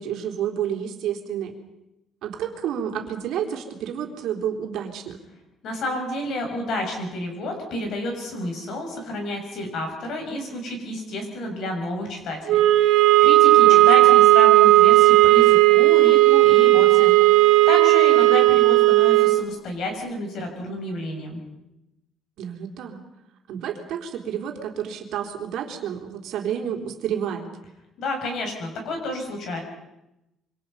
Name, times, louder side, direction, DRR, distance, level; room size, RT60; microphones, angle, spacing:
voice 1, 0.0-1.5 2.2-5.2 13.6-13.9 22.4-23.0 23.5-27.5, right 9 dB, 65° right, 3 dB, 3.6 m, -30 dB
voice 2, 5.6-21.4 28.0-29.6, left 1 dB, 55° left, 3 dB, 6.9 m, -30 dB
sound 1, 12.5-19.5, right 17 dB, 90° right, 1.7 m, -14 dB
27.0 x 25.0 x 5.6 m, 0.91 s
cardioid pair, 180°, 0 cm